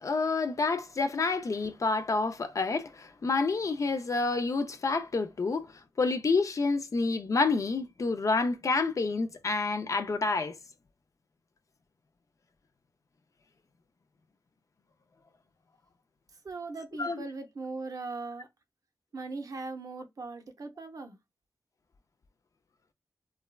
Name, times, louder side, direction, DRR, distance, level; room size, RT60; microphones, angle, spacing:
voice 1, 0.0-5.7 6.0-10.6 17.0-17.2, left 3 dB, 50° left, 0.4 m, -28 dB
voice 2, 16.4-18.5 19.1-21.2, right 3 dB, 60° right, 0.6 m, -39 dB
3.2 x 2.2 x 2.2 m
wide cardioid pair, 75°, 7 cm